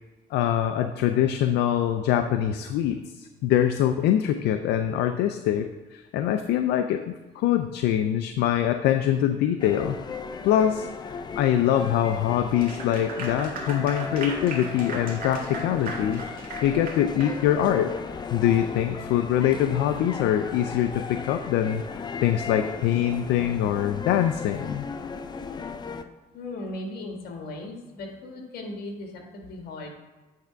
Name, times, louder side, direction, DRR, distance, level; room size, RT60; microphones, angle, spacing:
voice 1, 0.3-10.0 10.4-17.9 18.3-21.8 22.2-24.8, left 10 dB, 80° left, 7 dB, 0.5 m, -24 dB
sound 1, 9.6-26.0, left 5 dB, 25° left, 0.5 m, -36 dB
Clapping / Applause, 12.5-17.4, right 3 dB, 60° right, 1.8 m, -37 dB
voice 2, 26.3-29.9, left 2 dB, 65° left, 1 dB, 1.8 m, -37 dB
9.0 x 3.5 x 5.1 m, 1.2 s
cardioid pair, 110°, 17 cm